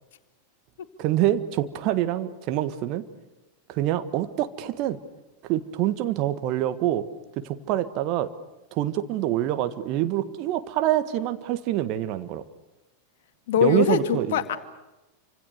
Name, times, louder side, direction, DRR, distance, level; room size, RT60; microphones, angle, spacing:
voice 1, 1.0-3.0 3.7-5.0 5.5-7.1 7.4-8.3 8.7-12.4 13.6-14.4, right 13 dB, 40° right, 10 dB, 1.5 m, -26 dB
voice 2, 13.5-14.6, left 8 dB, 55° left, 9 dB, 2.0 m, -22 dB
28.0 x 26.0 x 6.6 m, 1.0 s
figure-of-eight pair, 90°, 0 cm